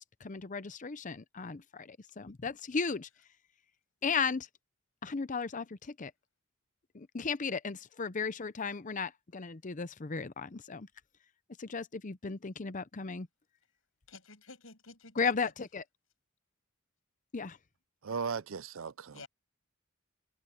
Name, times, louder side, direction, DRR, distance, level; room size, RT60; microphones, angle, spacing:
voice 1, 0.0-3.1 4.0-4.5 5.0-6.1 6.9-10.9 11.6-13.3 15.2-15.8 17.3-17.6, left 5 dB, 40° left, 0.7 m, -35 dB
voice 2, 14.1-15.5 19.1-19.3, left 3 dB, 80° left, 6.6 m, -51 dB
voice 3, 18.0-19.2, right 5 dB, 75° right, 0.6 m, -37 dB
head